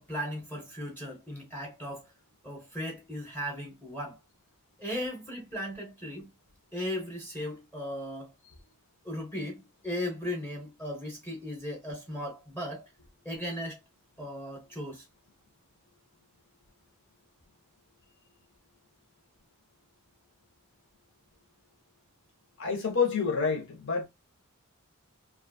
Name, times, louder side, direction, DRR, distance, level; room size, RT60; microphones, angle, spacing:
voice 1, 0.0-2.1 2.4-4.2 4.8-6.3 6.7-8.3 9.0-12.9 13.2-13.8 14.2-15.1, equal, 10° left, 0.9 m, -37 dB
voice 2, 22.6-24.0, left 5 dB, 55° left, 1.0 m, -28 dB
2.7 x 2.4 x 2.6 m
head